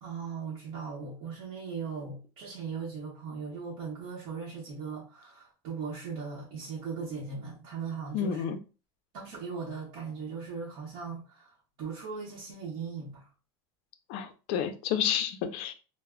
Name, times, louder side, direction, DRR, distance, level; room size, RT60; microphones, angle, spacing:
voice 1, 0.0-8.4 9.1-13.3, right 5 dB, 60° right, 0.8 m, -38 dB
voice 2, 8.1-8.6 14.1-15.7, left 8 dB, 55° left, 0.4 m, -30 dB
2.1 x 2.0 x 3.5 m
cardioid pair, 160°, 12 cm